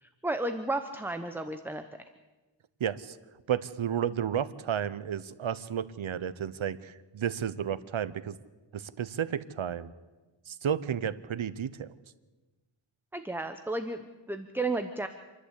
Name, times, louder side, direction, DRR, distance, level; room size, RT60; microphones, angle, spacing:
voice 1, 0.0-1.8 13.1-15.1, right 2 dB, 5° right, 7 dB, 0.9 m, -33 dB
voice 2, 2.8-3.2 3.5-8.4 8.7-9.9 10.5-11.9, right 9 dB, 70° right, 15 dB, 1.0 m, -32 dB
27.5 x 11.5 x 8.3 m, 1.2 s
wide cardioid pair, 90°, 49 cm